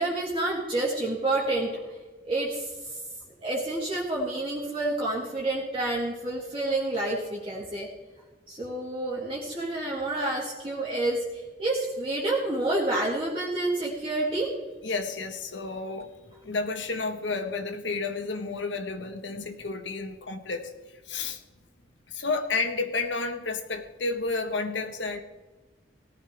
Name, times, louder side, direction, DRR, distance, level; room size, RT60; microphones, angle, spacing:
voice 1, 0.0-1.8 2.2-2.7 3.4-7.9 8.5-11.2 11.6-14.5, right 2 dB, 30° right, -5 dB, 2.7 m, -28 dB
voice 2, 14.8-16.1 16.4-20.7 21.1-21.4 22.1-25.2, left 3 dB, 80° left, 6 dB, 1.4 m, -31 dB
18.0 x 13.5 x 3.5 m, 1.3 s
head